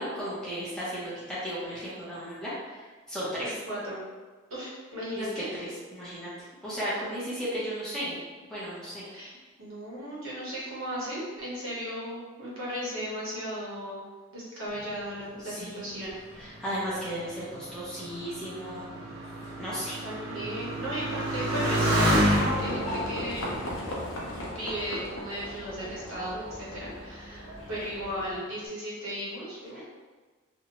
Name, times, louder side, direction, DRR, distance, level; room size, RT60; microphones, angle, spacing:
voice 1, 0.0-3.5 5.2-5.3 5.6-6.3 6.6-8.1 8.4-9.1 15.4-16.0 16.4-18.9 19.6-20.0 29.7-29.8, equal, 5° left, -10 dB, 0.6 m, -35 dB
voice 2, 3.4-4.0 4.5-5.5 9.1-9.3 9.6-14.0 14.3-16.2 20.0-23.5 24.2-29.8, equal, 85° right, -6 dB, 1.0 m, -36 dB
Motorcycle, 16.1-25.1 25.8-26.4, equal, 50° right, 0.7 m, -30 dB
Livestock farm animals working animals, 22.3-28.4, equal, 70° left, 0.6 m, -37 dB
2.6 x 2.1 x 2.8 m, 1.3 s
head